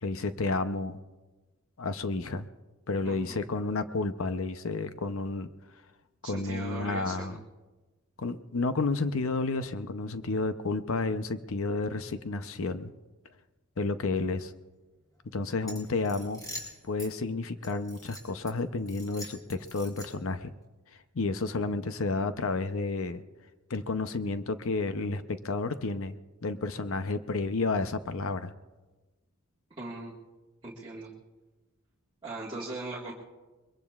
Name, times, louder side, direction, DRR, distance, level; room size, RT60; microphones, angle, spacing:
voice 1, 0.0-1.0 1.8-2.5 2.9-5.5 6.3-7.4 8.2-12.9 13.8-14.5 15.3-16.4 16.8-20.5 21.1-23.2 23.7-26.1 26.4-28.5, left 3 dB, 65° left, 10 dB, 0.7 m, -31 dB
voice 2, 3.0-3.4 6.2-7.4 29.8-30.1 30.6-31.1 32.2-33.1, right 2 dB, 20° right, -6 dB, 1.7 m, -39 dB
sound 1, 15.6-17.1 17.6-18.5 18.9-20.3, left 1 dB, 15° left, 3.6 m, -44 dB
22.5 x 22.0 x 2.4 m, 1.2 s
head